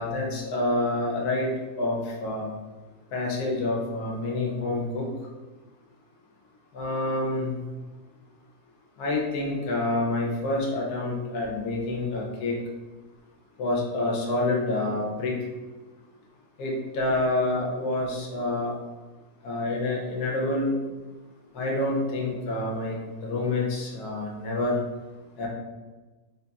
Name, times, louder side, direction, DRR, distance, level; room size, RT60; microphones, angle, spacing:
voice 1, 0.0-1.5 1.8-2.5 3.1-5.1 6.7-7.6 9.0-12.6 13.6-15.3 16.6-18.7 19.4-20.7 21.5-24.8 25.4-25.5, left 2 dB, 80° left, -2 dB, 1.3 m, -27 dB
3.9 x 3.6 x 2.3 m, 1.3 s
omnidirectional pair, 1.6 m